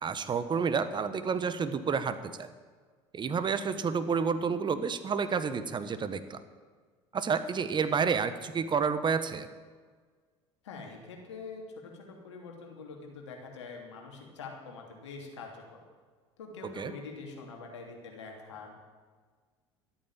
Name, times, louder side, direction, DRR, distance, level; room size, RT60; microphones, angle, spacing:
voice 1, 0.0-2.5 3.1-6.4 7.1-9.5 16.8-16.9, right 6 dB, 30° right, 12 dB, 1.2 m, -30 dB
voice 2, 10.6-15.8 16.4-18.7, left 4 dB, 85° left, 1 dB, 3.0 m, -45 dB
13.5 x 8.8 x 9.0 m, 1.5 s
hypercardioid pair, 70°, 15 cm